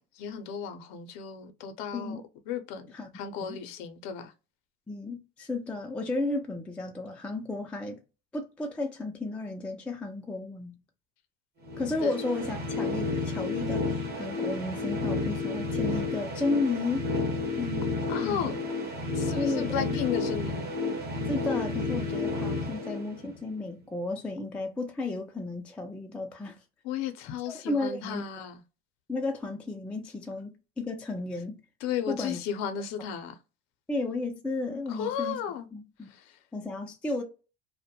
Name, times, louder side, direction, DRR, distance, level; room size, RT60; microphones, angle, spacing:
voice 1, 0.0-2.9 3.1-4.3 12.0-12.1 18.1-18.6 19.1-20.7 26.8-28.6 31.8-33.4 34.9-35.7 36.0-36.4, left 8 dB, 65° left, 0.6 m, -34 dB
voice 2, 4.9-8.0 8.3-10.8 11.8-17.1 17.6-17.9 18.2-18.5 19.3-20.0 21.3-26.6 27.5-28.2 29.1-31.6 32.1-32.4 33.9-35.4 35.7-36.1 36.5-37.2, left 2 dB, 5° left, 0.3 m, -33 dB
sound 1, 11.6-23.6, left 3 dB, 35° right, 0.8 m, -31 dB
2.1 x 2.1 x 2.7 m
hypercardioid pair, 80°, 30 cm